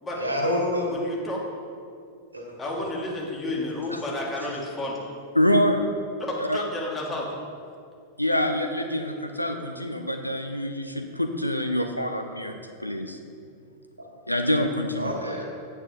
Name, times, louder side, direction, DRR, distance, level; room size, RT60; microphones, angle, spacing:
voice 1, 0.1-0.9 2.3-2.7 3.6-3.7 14.0-14.1 15.0-15.5, left 1 dB, 80° right, -1 dB, 1.9 m, -28 dB
voice 2, 0.9-1.4 2.6-5.0 6.2-7.3, left 1 dB, 15° left, -3 dB, 2.2 m, -31 dB
voice 3, 5.4-5.8 6.4-6.6 8.2-12.5 12.8-13.2 14.3-15.1, left 1 dB, 90° left, 6 dB, 0.5 m, -25 dB
9.0 x 8.8 x 3.8 m, 2.3 s
figure-of-eight pair, 90°, 0 cm